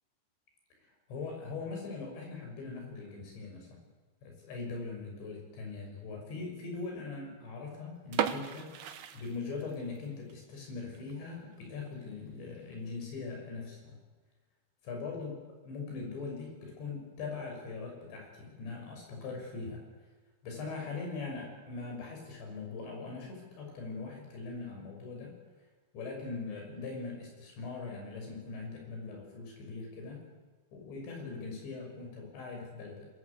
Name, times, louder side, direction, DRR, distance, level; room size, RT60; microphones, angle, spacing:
voice 1, 1.1-3.8 4.2-14.0 14.8-15.3 15.6-19.8 20.4-25.3 25.9-30.2 30.7-33.1, left 4 dB, 80° left, 2 dB, 8.6 m, -41 dB
sound 1, 8.1-10.0 10.3-10.4 10.9-11.1 11.5-11.6 11.9-12.0 12.7-13.0, right 9 dB, 65° right, 2.1 m, -35 dB
25.5 x 22.0 x 8.4 m, 1.3 s
omnidirectional pair, 5.1 m